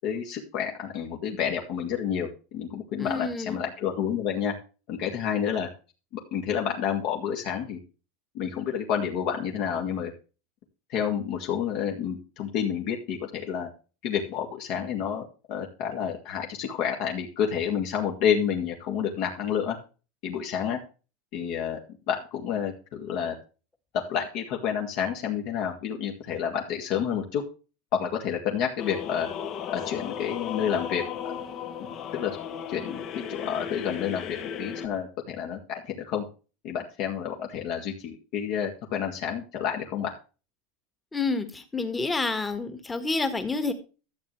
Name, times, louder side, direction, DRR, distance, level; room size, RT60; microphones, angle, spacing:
voice 1, 0.0-4.5 4.9-5.7 6.3-7.8 8.3-10.1 10.9-13.7 14.0-19.8 20.2-20.8 21.3-21.8 22.1-23.3 24.1-27.4 27.9-29.3 29.7-31.4 32.1-32.3 32.7-36.2 36.6-40.1, left 8 dB, 50° left, 1 dB, 2.0 m, -29 dB
voice 2, 3.0-3.6 41.1-43.7, left 3 dB, 10° left, 9 dB, 1.6 m, -29 dB
sound 1, 28.8-34.9, left 8 dB, 35° left, 1.2 m, -35 dB
13.0 x 7.8 x 3.2 m, 0.33 s
supercardioid pair, 150°, 0 cm